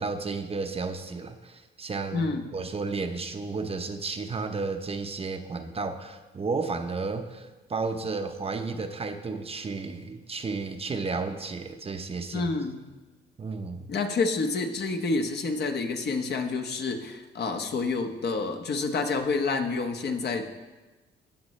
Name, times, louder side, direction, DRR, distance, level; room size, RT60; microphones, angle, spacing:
voice 1, 0.0-12.5 13.4-13.9, right 4 dB, 30° right, 6 dB, 0.8 m, -33 dB
voice 2, 2.1-2.4 12.3-12.8 13.9-20.5, left 3 dB, 55° left, 4 dB, 1.1 m, -28 dB
15.5 x 7.4 x 3.2 m, 1.2 s
cardioid pair, 90°, 20 cm